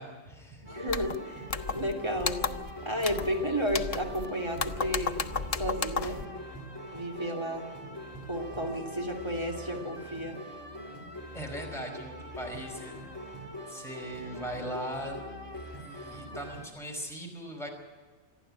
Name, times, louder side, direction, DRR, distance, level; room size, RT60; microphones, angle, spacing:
voice 1, 0.0-0.7 11.3-13.0 13.7-15.2 15.8-17.7, equal, ahead, 0 dB, 5.0 m, -39 dB
sound 1, 0.6-16.7, equal, 20° left, 2.9 m, -43 dB
voice 2, 0.6-2.4 2.8-5.3 5.6-6.2 6.9-7.7 8.3-10.4, equal, 25° right, 2 dB, 2.9 m, -32 dB
sound 2, 0.9-1.2 1.5-1.9 2.2-2.7 3.0-3.3 3.7-4.3 4.6-6.2, left 5 dB, 40° left, 0.6 m, -33 dB
27.0 x 11.0 x 8.8 m, 1.5 s
omnidirectional pair, 1.2 m